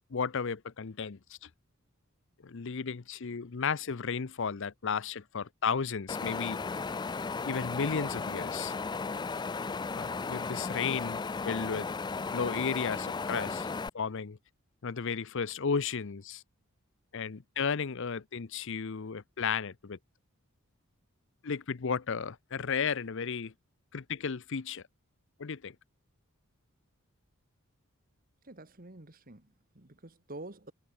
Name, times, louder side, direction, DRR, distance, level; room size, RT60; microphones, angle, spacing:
voice 1, 0.1-1.5 2.4-6.6 7.4-8.7 10.0-11.9 12.3-13.7 13.9-14.4 14.8-16.4 17.1-20.0 21.4-23.5 23.9-24.8 25.4-25.7, left 6 dB, 60° left, 0.6 m, -34 dB
Wind, 6.1-13.9, left 4 dB, 20° left, 0.3 m, -35 dB
voice 2, 28.4-30.7, right 2 dB, 40° right, 1.9 m, -48 dB
head